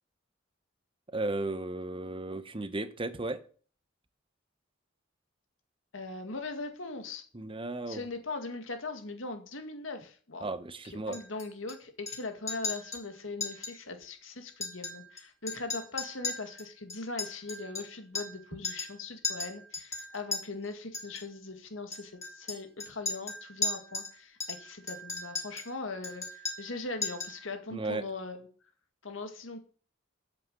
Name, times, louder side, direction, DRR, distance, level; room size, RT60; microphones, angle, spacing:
voice 1, 1.1-3.4 7.3-8.1 10.4-11.2 27.7-28.0, right 2 dB, 25° right, 12 dB, 0.9 m, -35 dB
voice 2, 5.9-7.2 7.9-10.5 11.1-28.5 29.0-29.6, left 3 dB, 90° left, 6 dB, 2.0 m, -40 dB
Chink clink, 11.1-11.7 12.1-12.2 12.5-13.0 13.4-13.7 14.0-14.1 14.5-15.2 15.5-18.4 18.6-19.0 19.2-20.4 20.9-21.2 21.9-24.1 24.4-25.7 26.0-26.7 27.0-27.4, left 4 dB, 15° left, 3.4 m, -36 dB
8.5 x 7.5 x 7.9 m, 0.43 s
head